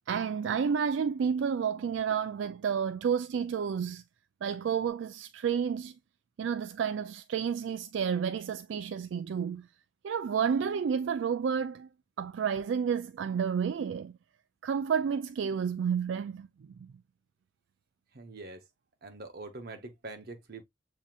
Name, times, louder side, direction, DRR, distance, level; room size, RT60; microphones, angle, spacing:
voice 1, 0.1-4.0 4.4-6.0 6.4-9.7 10.0-11.9 12.2-14.1 14.6-16.9, right 7 dB, 75° right, 0.3 m, -30 dB
voice 2, 18.1-18.6 19.0-20.6, right 2 dB, 55° right, 1.0 m, -44 dB
7.2 x 2.8 x 2.4 m
head